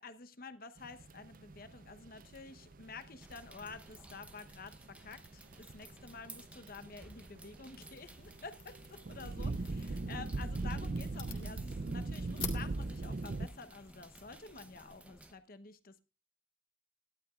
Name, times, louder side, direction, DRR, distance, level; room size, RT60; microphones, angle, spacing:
voice 1, 0.0-16.0, left 4 dB, 50° left, 11 dB, 1.0 m, -50 dB
sound 1, 0.8-13.5, right 2 dB, 45° right, 0.5 m, -41 dB
sound 2, 3.2-15.3, right 1 dB, 5° right, 0.8 m, -57 dB
sound 3, 7.8-15.0, left 4 dB, 30° left, 2.0 m, -49 dB
18.0 x 11.5 x 2.5 m, 0.31 s
head